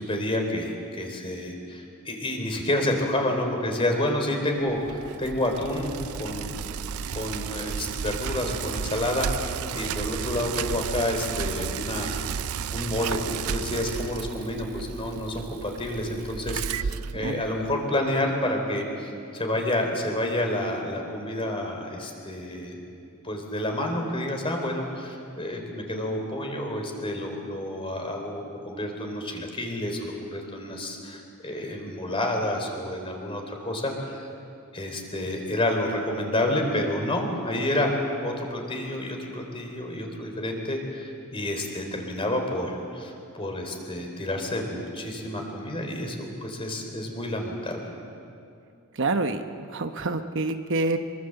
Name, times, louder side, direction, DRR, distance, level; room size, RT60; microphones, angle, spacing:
voice 1, 0.0-6.6 7.0-12.1 12.7-22.8 23.2-34.3 34.7-37.9 38.2-47.9, left 1 dB, 25° left, 3 dB, 3.8 m, -29 dB
Bicycle, 4.7-17.8, right 7 dB, 80° right, 0.5 m, -33 dB
voice 2, 49.0-51.0, right 3 dB, 60° right, 7 dB, 1.0 m, -27 dB
24.5 x 22.5 x 8.0 m, 2.6 s
head